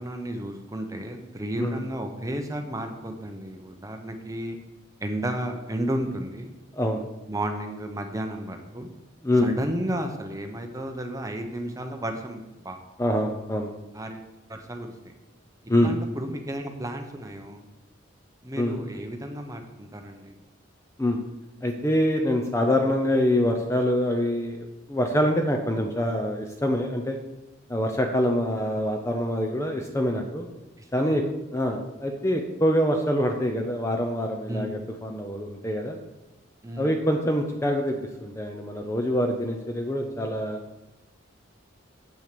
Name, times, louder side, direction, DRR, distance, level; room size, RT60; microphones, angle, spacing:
voice 1, 0.0-4.6 5.0-6.6 7.3-8.9 9.4-12.8 13.9-15.1 15.8-17.6 18.4-20.3 30.8-31.2 34.5-34.8 36.6-36.9, right 1 dB, 15° right, 4 dB, 0.8 m, -33 dB
voice 2, 13.0-13.7 15.7-15.9 18.6-18.8 21.0-21.2 21.6-27.2 27.7-30.5 30.9-31.2 31.5-36.0 36.8-37.9 38.2-40.6, left 1 dB, 15° left, 4 dB, 0.5 m, -25 dB
7.9 x 6.2 x 6.8 m, 1.1 s
head